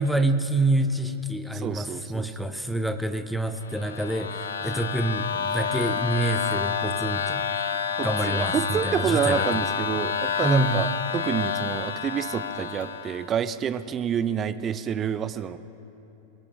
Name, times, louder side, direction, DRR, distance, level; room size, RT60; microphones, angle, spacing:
voice 1, 0.0-7.5 8.0-9.6 10.4-10.8, right 2 dB, ahead, 7 dB, 0.8 m, -27 dB
voice 2, 1.5-2.3 8.0-15.6, right 8 dB, 25° right, 13 dB, 0.5 m, -28 dB
sound 1, 3.6-13.3, left 7 dB, 65° left, 0.6 m, -29 dB
23.0 x 21.0 x 2.2 m, 2.9 s
figure-of-eight pair, 90°, 0 cm